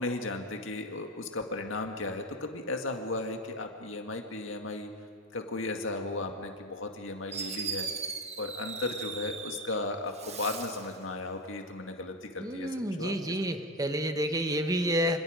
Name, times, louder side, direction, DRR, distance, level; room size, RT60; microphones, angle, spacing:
voice 1, 0.0-4.9 5.3-7.9 8.4-12.7 13.0-13.5, left 2 dB, 75° left, 3 dB, 2.1 m, -35 dB
Fireworks, 6.9-7.0 7.3-9.7 10.1-10.9, right 5 dB, 35° right, 1.6 m, -38 dB
voice 2, 12.4-15.2, equal, 20° right, 6 dB, 1.5 m, -29 dB
28.0 x 26.5 x 5.2 m, 2.1 s
head